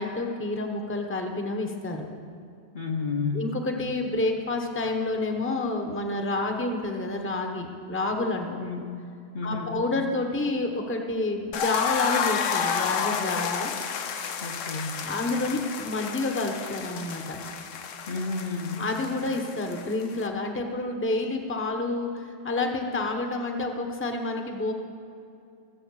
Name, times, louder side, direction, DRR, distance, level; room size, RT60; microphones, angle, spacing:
voice 1, 0.0-2.1 3.3-8.5 8.8-8.9 9.4-13.7 15.0-17.4 18.8-24.7, left 2 dB, 10° left, 3 dB, 0.9 m, -29 dB
voice 2, 2.7-3.5 8.5-8.8 9.3-9.8 14.4-15.0 18.1-18.8, left 4 dB, 45° left, 1 dB, 1.0 m, -31 dB
sound 1, 11.5-20.3, left 7 dB, 90° left, 1.1 m, -31 dB
20.5 x 7.6 x 4.8 m, 2.5 s
omnidirectional pair, 1.3 m